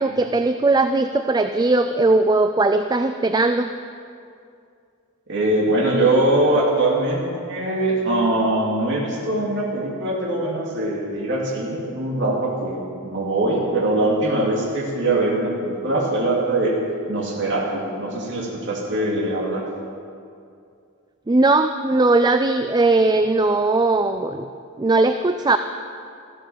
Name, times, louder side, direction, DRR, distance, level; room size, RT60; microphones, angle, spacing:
voice 1, 0.0-3.7 21.3-24.5 24.8-25.6, right 2 dB, 20° right, 9 dB, 0.4 m, -19 dB
voice 2, 5.3-7.2 7.5-16.8 17.1-19.6, right 2 dB, 55° right, -3 dB, 2.7 m, -22 dB
14.5 x 13.0 x 7.2 m, 2.4 s
head